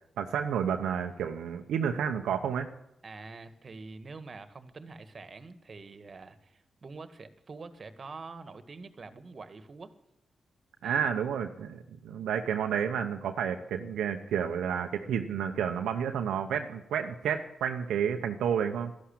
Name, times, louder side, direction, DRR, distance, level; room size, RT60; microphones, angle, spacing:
voice 1, 0.2-2.7 10.8-18.9, right 8 dB, 85° right, 5 dB, 1.0 m, -30 dB
voice 2, 3.0-9.9 10.8-11.1, right 3 dB, 50° right, 11 dB, 1.7 m, -46 dB
13.0 x 11.5 x 8.7 m, 0.81 s
supercardioid pair, 45°, 0 cm